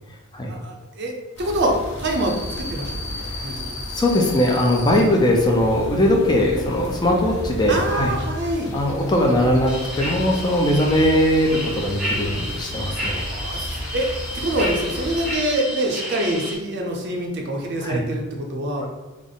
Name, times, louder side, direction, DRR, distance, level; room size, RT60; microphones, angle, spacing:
voice 1, 0.5-1.1 1.4-3.6 7.7-8.7 13.1-14.1 14.3-18.8, right 1 dB, 50° right, 1 dB, 0.6 m, -25 dB
sound 1, 1.4-15.3, left 1 dB, 70° left, 0.7 m, -33 dB
voice 2, 3.9-8.1 8.7-13.2 17.8-18.0 18.8-18.9, left 1 dB, 20° left, 0 dB, 0.4 m, -20 dB
sound 2, 9.6-16.5, equal, 5° right, 0.8 m, -31 dB
3.5 x 2.0 x 3.7 m, 1.1 s
head